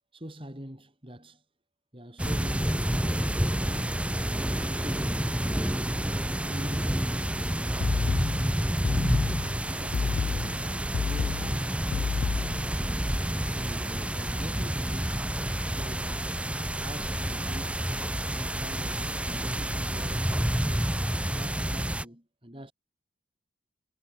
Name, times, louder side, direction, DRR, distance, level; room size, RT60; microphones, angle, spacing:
voice 1, 0.1-1.5 1.9-4.1 4.5-5.5 6.5-9.3 9.7-13.0 13.4-15.2 15.7-16.5 16.8-17.9 18.5-21.0 21.3-22.7, equal, 30° right, 4.0 m, -44 dB
sound 1, 2.2-22.0, right 1 dB, 5° right, 1.5 m, -29 dB
sound 2, 7.8-12.8, left 5 dB, 60° left, 0.4 m, -30 dB
head